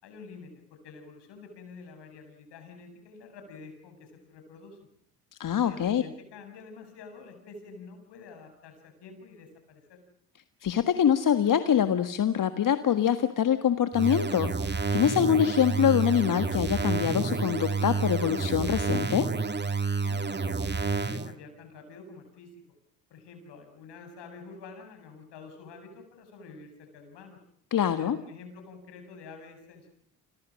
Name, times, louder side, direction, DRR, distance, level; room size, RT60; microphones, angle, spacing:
voice 1, 0.0-4.8 5.6-10.0 19.9-22.5 23.1-27.4 28.0-29.9, left 4 dB, 65° left, 6 dB, 7.9 m, -48 dB
voice 2, 5.4-6.0 10.6-19.3 27.7-28.2, left 9 dB, 45° left, 10 dB, 1.6 m, -24 dB
sound 1, 13.9-21.3, right 4 dB, 25° right, 2.0 m, -29 dB
29.5 x 25.0 x 6.4 m, 0.64 s
hypercardioid pair, 65°, 45 cm